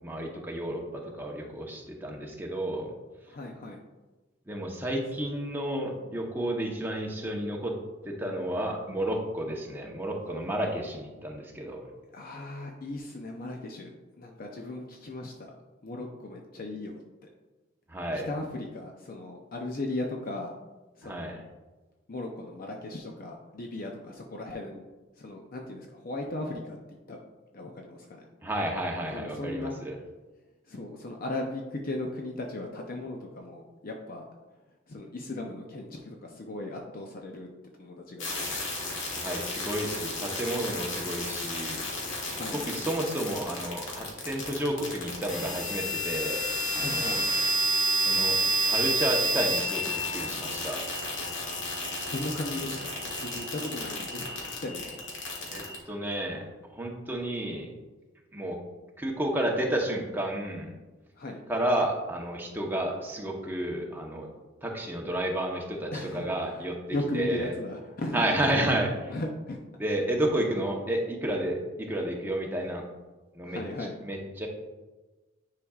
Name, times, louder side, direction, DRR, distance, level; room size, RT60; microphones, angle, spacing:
voice 1, 0.0-2.9 4.5-7.7 8.0-11.8 17.9-18.3 21.0-21.4 28.4-29.9 39.1-41.8 42.5-46.4 46.7-47.2 48.0-48.4 48.6-50.8 55.5-57.7 58.3-58.6 59.0-60.7 61.5-64.3 64.6-66.7 67.1-67.5 68.1-69.1 69.8-72.8 73.3-73.6 74.0-74.5, right 1 dB, 10° right, 0 dB, 0.9 m, -31 dB
voice 2, 3.3-3.8 12.1-13.9 14.2-15.5 15.8-17.0 18.3-20.5 21.0-21.4 22.1-24.8 25.2-26.8 27.1-27.2 27.5-28.3 29.1-29.7 30.7-34.2 34.9-37.5 37.8-38.6 42.3-42.6 46.8-47.2 52.1-55.0 61.2-61.4 65.9-68.3 69.1-69.6 73.4-73.9, left 2 dB, 50° left, 1 dB, 0.6 m, -37 dB
sound 1, 38.2-55.8, right 1 dB, 75° left, 1.6 m, -31 dB
9.8 x 4.9 x 2.4 m, 1.2 s
head